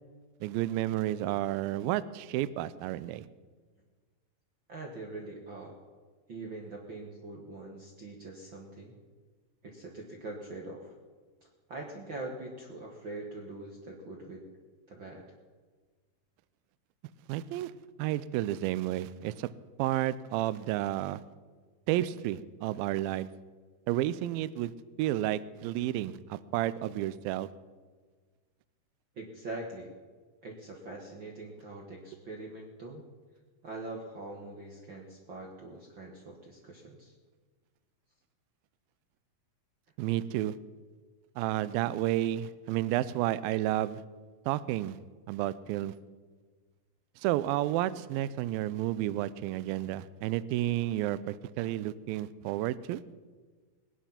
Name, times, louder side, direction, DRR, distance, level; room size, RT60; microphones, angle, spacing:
voice 1, 0.4-3.3 17.3-17.7 18.0-19.5 19.8-21.2 21.9-23.3 23.9-24.7 25.0-27.5 40.0-40.6 41.4-44.0 44.5-45.0 45.3-46.0 47.2-53.0, right 14 dB, 80° right, 16 dB, 2.2 m, -31 dB
voice 2, 4.7-5.7 6.3-9.0 9.6-10.9 11.7-14.4 14.9-15.2 29.1-29.9 30.4-33.1 33.6-37.1, right 2 dB, 55° right, 0 dB, 1.3 m, -43 dB
20.5 x 10.5 x 5.8 m, 1.4 s
omnidirectional pair, 4.6 m